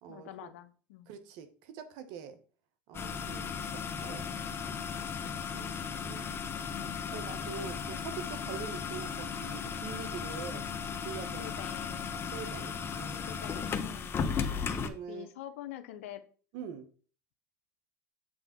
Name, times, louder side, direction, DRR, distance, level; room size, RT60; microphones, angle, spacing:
voice 1, 0.1-1.2 6.6-7.4 11.4-12.2 13.3-14.8 15.1-16.2, left 12 dB, 90° left, 11 dB, 0.8 m, -47 dB
voice 2, 1.1-2.4 2.9-4.2 5.0-6.4 7.1-10.7 11.0-11.5 12.2-13.3 14.5-15.3 16.5-16.9, right 7 dB, 70° right, 10 dB, 1.2 m, -44 dB
sound 1, 2.9-14.9, left 6 dB, 35° left, 0.9 m, -36 dB
7.7 x 3.6 x 5.8 m, 0.40 s
supercardioid pair, 100°, 7 cm